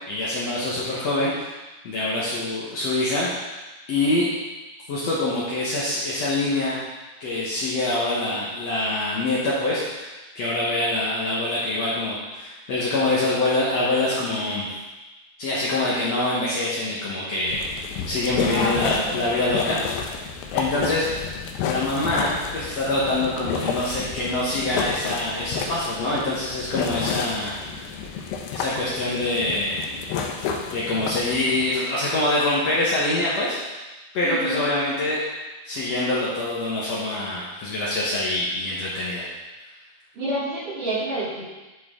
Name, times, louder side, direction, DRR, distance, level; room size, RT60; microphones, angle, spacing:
voice 1, 0.1-1.5 1.8-3.5 3.9-4.3 4.9-6.8 7.2-14.7 15.4-17.8 18.1-19.8 20.5-21.1 21.6-27.8 28.5-29.8 30.7-33.6 34.1-35.2 35.7-39.3, left 2 dB, 70° left, -7 dB, 1.6 m, -25 dB
sound 1, 17.5-31.7, left 6 dB, 90° left, 2.8 m, -31 dB
voice 2, 18.5-19.3 34.2-34.6 40.1-41.4, right 1 dB, 60° right, -13 dB, 3.8 m, -28 dB
11.0 x 4.4 x 3.7 m, 1.1 s
omnidirectional pair, 4.6 m